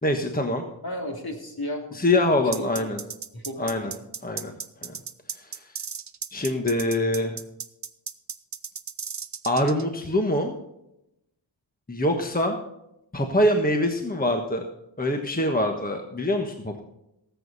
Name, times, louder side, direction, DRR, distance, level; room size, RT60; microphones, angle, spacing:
voice 1, 0.0-0.6 2.0-3.0 3.6-3.9 4.2-4.5 4.8-5.0 5.4-5.7 6.3-7.4 9.4-10.5 11.9-12.6 13.1-14.7 15.0-16.8, left 1 dB, 20° left, 4 dB, 1.3 m, -24 dB
voice 2, 0.8-2.0 2.6-3.0 3.3-4.0, left 1 dB, 50° left, 2 dB, 2.8 m, -34 dB
sound 1, 2.5-9.8, right 6 dB, 40° right, 0.7 m, -35 dB
18.5 x 8.2 x 4.1 m, 0.84 s
wide cardioid pair, 95°, 46 cm